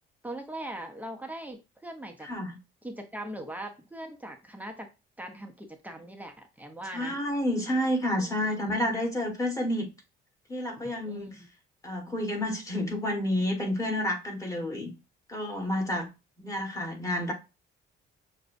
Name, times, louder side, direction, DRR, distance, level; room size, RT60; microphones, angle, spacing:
voice 1, 0.2-2.3 2.8-4.9 5.2-7.2 8.2-8.9 11.0-11.5, right 1 dB, 10° right, 0.7 m, -41 dB
voice 2, 2.2-2.6 6.9-9.9 10.5-11.4 11.8-14.9 15.3-16.1 16.4-17.3, left 1 dB, 15° left, 1.4 m, -30 dB
6.5 x 2.2 x 2.6 m
cardioid pair, 105°, 21 cm